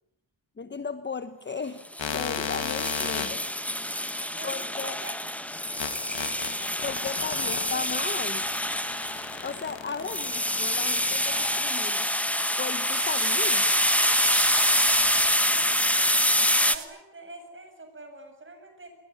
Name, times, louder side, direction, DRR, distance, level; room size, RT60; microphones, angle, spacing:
voice 1, 0.6-3.5 4.4-5.0 6.8-8.4 9.4-12.1 12.6-13.7, left 5 dB, 25° left, 11 dB, 1.1 m, -36 dB
sound 1, 1.9-16.7, left 1 dB, 5° left, 1.2 m, -26 dB
sound 2, 2.0-11.8, left 8 dB, 75° left, 2.2 m, -36 dB
voice 2, 4.3-5.1 7.4-7.8 16.6-19.0, right 2 dB, 25° right, 5 dB, 7.8 m, -44 dB
sound 3, 12.9-16.9, right 8 dB, 70° right, 3.4 m, -35 dB
28.0 x 22.0 x 9.6 m, 0.78 s
wide cardioid pair, 155°, 44 cm